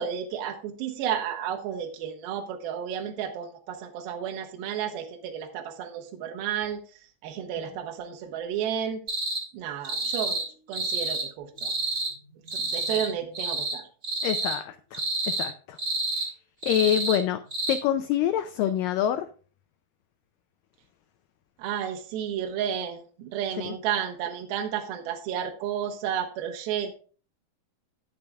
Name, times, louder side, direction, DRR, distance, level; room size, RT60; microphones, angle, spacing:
voice 1, 0.0-6.8 7.2-9.0 9.5-10.4 10.7-11.7 12.5-13.9 21.6-26.9, right 9 dB, 80° right, 3 dB, 2.7 m, -32 dB
sound 1, 9.1-9.4 9.8-10.5 10.7-11.3 11.6-12.1 12.5-13.1 13.3-13.8 14.0-14.6 14.9-15.5 15.8-16.3 16.6-17.2 17.5-17.8, right 3 dB, 25° right, 2.7 m, -29 dB
voice 2, 14.2-15.8 16.6-17.4 17.7-19.3 23.7-23.8, left 11 dB, 85° left, 10 dB, 1.9 m, -26 dB
18.0 x 6.6 x 2.3 m, 0.40 s
omnidirectional pair, 4.5 m